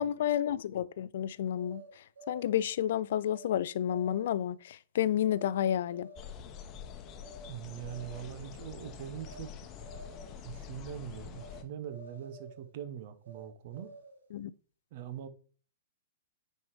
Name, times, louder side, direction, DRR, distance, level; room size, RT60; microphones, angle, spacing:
voice 1, 0.0-6.1 14.3-14.5, left 10 dB, 55° left, 0.3 m, -31 dB
sound 1, 1.5-2.6 3.3-3.6 3.9-4.5 5.2-5.5 5.8-6.4 7.2-7.5 7.8-8.4 9.2-9.5 9.8-10.4 11.3-11.6 11.9-12.7 13.2-14.3, right 1 dB, 70° right, 1.5 m, -52 dB
sound 2, 6.2-11.6, left 7 dB, 30° left, 1.0 m, -46 dB
voice 2, 7.5-9.5 10.4-13.9 14.9-15.3, right 10 dB, 45° right, 1.0 m, -42 dB
9.6 x 5.4 x 3.2 m
figure-of-eight pair, 105°, 0 cm